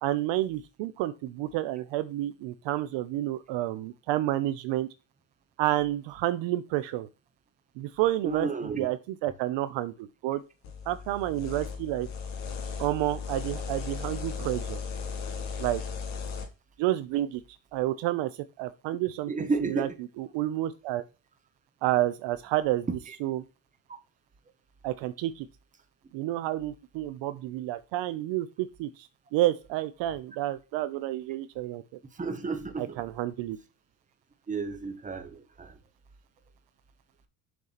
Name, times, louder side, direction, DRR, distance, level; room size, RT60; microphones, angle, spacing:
voice 1, 0.0-4.9 5.6-7.1 7.8-8.5 8.8-10.4 10.9-12.1 12.8-14.8 15.6-15.8 16.8-17.4 17.7-18.3 18.6-19.9 20.2-21.0 21.8-22.9 23.2-23.4 24.8-25.5 26.1-28.9 29.3-32.0 32.8-33.6, right 14 dB, 65° right, 0.7 m, -30 dB
voice 2, 8.2-8.9 19.3-20.0 23.1-23.2 32.1-33.0 34.5-35.8, right 4 dB, 15° right, 1.1 m, -32 dB
sound 1, 10.6-16.5, left 5 dB, 65° left, 2.6 m, -36 dB
6.8 x 4.6 x 4.2 m
cardioid pair, 120°, 48 cm